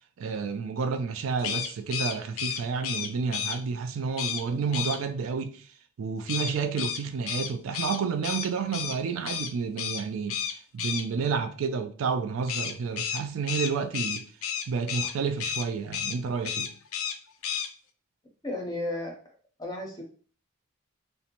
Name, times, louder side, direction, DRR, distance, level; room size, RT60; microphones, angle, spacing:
voice 1, 0.2-5.7 6.0-14.2 14.7-16.7, right 5 dB, 75° right, 0.3 m, -30 dB
sound 1, 1.4-3.6 4.2-4.4 4.7-5.0 6.3-9.0 9.3-9.5 9.8-10.0 10.3-11.0 12.5-15.1 15.4-15.7 15.9-16.2 16.4-17.2 17.4-17.7, left 8 dB, 85° left, 0.4 m, -32 dB
voice 2, 18.4-19.2 19.6-20.0, left 1 dB, 20° left, 0.6 m, -33 dB
2.5 x 2.1 x 2.8 m
head